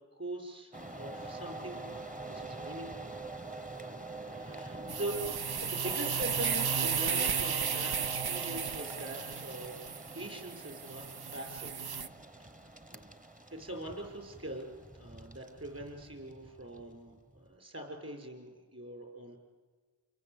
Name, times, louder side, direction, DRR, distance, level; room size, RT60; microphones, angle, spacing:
voice 1, 0.2-1.9 2.3-3.1 4.3-5.2 5.6-9.7 10.1-11.0 11.3-11.9 12.9-13.1 13.5-14.7 14.9-19.4, right 1 dB, 40° right, 3 dB, 6.6 m, -42 dB
sound 1, 0.7-17.5, right 2 dB, 20° right, 1.4 m, -45 dB
sound 2, 4.9-12.1, right 6 dB, 70° right, 0.9 m, -34 dB
29.5 x 22.5 x 8.5 m, 1.5 s
wide cardioid pair, 55°, 38 cm